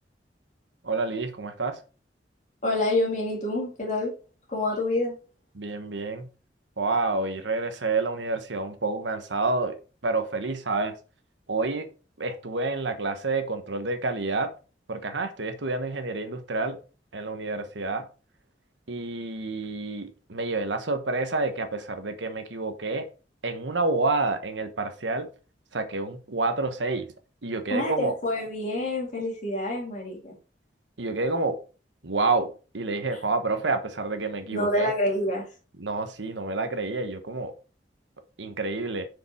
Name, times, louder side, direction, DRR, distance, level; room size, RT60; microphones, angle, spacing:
voice 1, 0.8-1.8 5.5-6.3 6.8-9.8 10.0-10.9 11.5-11.9 12.2-14.5 14.9-16.8 17.1-18.1 18.9-23.1 23.4-25.3 25.7-27.1 27.4-28.1 31.0-31.6 32.0-34.9 35.8-37.5 38.4-39.1, right 3 dB, 85° right, 1.2 m, -28 dB
voice 2, 2.6-4.1 4.5-5.1 27.7-30.3 34.5-35.4, left 1 dB, 40° left, 2.4 m, -27 dB
6.7 x 5.2 x 4.5 m
head